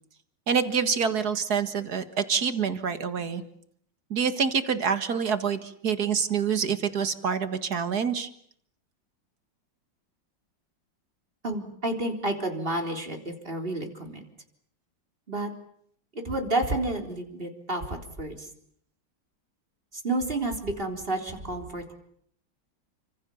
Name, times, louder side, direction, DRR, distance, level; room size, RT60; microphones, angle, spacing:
voice 1, 0.5-3.4 4.1-8.3, right 6 dB, 55° right, 10 dB, 2.2 m, -26 dB
voice 2, 11.4-14.2 15.3-15.5 16.1-18.5 20.0-21.9, right 2 dB, 25° right, 3 dB, 3.9 m, -30 dB
29.5 x 26.0 x 7.1 m, 0.67 s
omnidirectional pair, 2.1 m